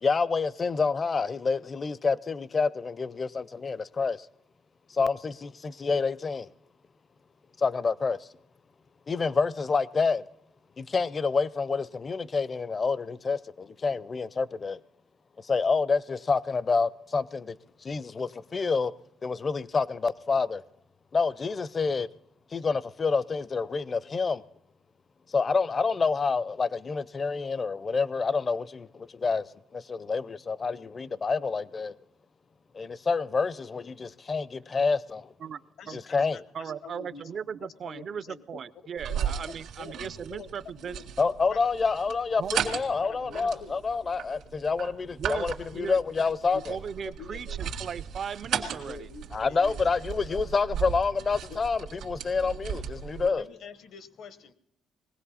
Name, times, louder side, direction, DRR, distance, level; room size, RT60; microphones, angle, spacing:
voice 1, 0.0-4.3 4.9-6.5 7.6-8.3 9.1-10.3 10.8-14.8 15.4-17.6 17.8-18.9 19.2-20.6 21.1-22.1 22.5-24.4 25.3-31.9 32.7-35.3 35.9-36.4 41.2-46.8 49.3-53.4, left 4 dB, 35° left, 0.5 m, -28 dB
voice 2, 35.8-37.3 37.6-38.6 39.1-41.0 41.5-41.8 43.0-43.8 45.7-45.8 46.5-46.6 47.2-47.7 48.7-50.5 51.5-51.6 53.2-54.5, left 6 dB, 75° left, 1.1 m, -46 dB
voice 3, 36.5-41.0 42.4-42.6 45.2-46.0 46.7-49.1, right 7 dB, 55° right, 0.5 m, -37 dB
sound 1, 39.0-53.3, right 8 dB, 80° right, 1.8 m, -36 dB
20.5 x 16.5 x 4.2 m
cardioid pair, 90°, 0 cm